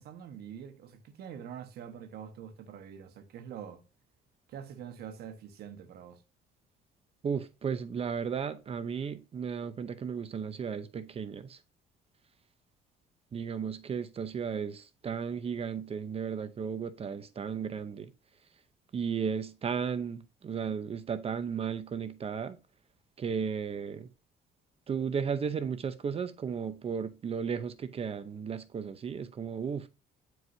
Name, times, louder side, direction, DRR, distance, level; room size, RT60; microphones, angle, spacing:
voice 1, 0.0-3.8 4.5-6.2, right 8 dB, 70° right, 1.3 m, -45 dB
voice 2, 7.2-11.6 13.3-18.1 18.9-22.6 23.2-24.1 24.9-29.9, right 6 dB, 35° right, 0.7 m, -34 dB
9.4 x 4.6 x 2.7 m
cardioid pair, 110°, 17 cm